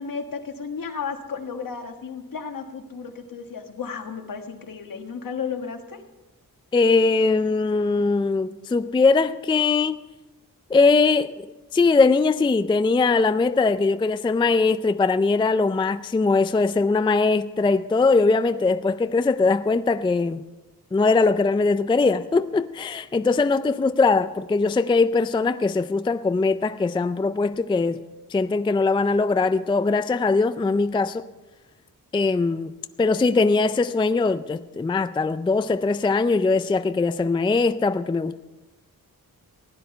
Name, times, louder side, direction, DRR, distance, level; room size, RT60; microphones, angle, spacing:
voice 1, 0.0-6.0, left 6 dB, 65° left, 1.5 m, -33 dB
voice 2, 6.7-10.0 10.7-11.5 11.7-20.4 20.9-28.0 28.3-31.2 32.1-32.7 33.0-38.4, left 3 dB, 15° left, 0.3 m, -21 dB
15.5 x 10.0 x 5.7 m
wide cardioid pair, 100°, 35 cm